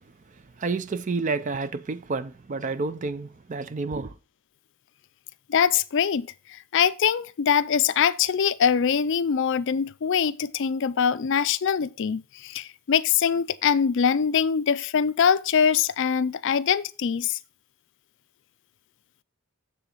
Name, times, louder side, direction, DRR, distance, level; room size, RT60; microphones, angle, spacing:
voice 1, 0.6-4.1, right 4 dB, 35° right, 0.4 m, -29 dB
voice 2, 5.5-17.4, left 7 dB, 55° left, 0.4 m, -23 dB
7.3 x 6.9 x 3.8 m
head